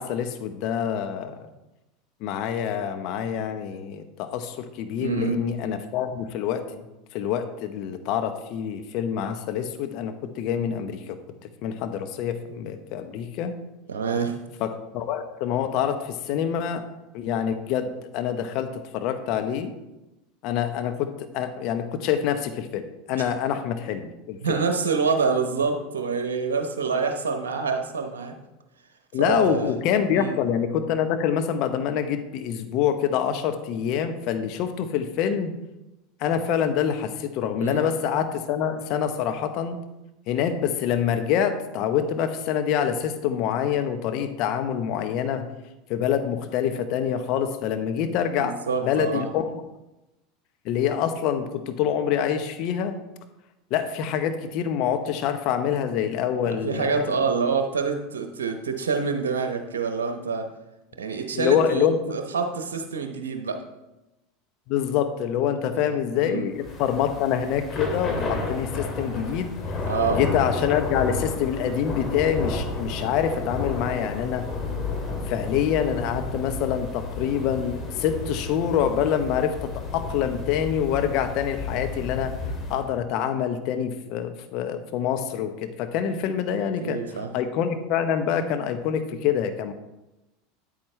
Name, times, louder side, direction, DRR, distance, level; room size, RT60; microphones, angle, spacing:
voice 1, 0.0-1.5 2.2-6.9 7.1-11.2 11.6-13.6 14.6-16.8 17.1-19.7 20.4-24.6 29.1-35.5 36.2-39.8 40.3-45.4 45.9-48.5 48.8-49.5 50.6-53.0 53.7-57.1 61.3-62.2 64.7-74.4 75.3-82.3 82.7-87.0 87.3-89.7, left 8 dB, 55° left, 8 dB, 1.0 m, -26 dB
voice 2, 5.0-5.4 13.9-14.4 23.2-23.3 24.4-28.3 29.1-29.7 30.1-30.4 37.6-37.9 48.4-49.3 56.5-60.5 61.0-63.6 65.6-66.5 69.9-70.2 86.8-87.3, right 5 dB, 80° right, 5 dB, 0.9 m, -27 dB
Thunder / Rain, 66.6-82.9, left 3 dB, 30° left, 2.5 m, -32 dB
9.3 x 8.9 x 3.3 m, 0.98 s
hypercardioid pair, 85°, 0 cm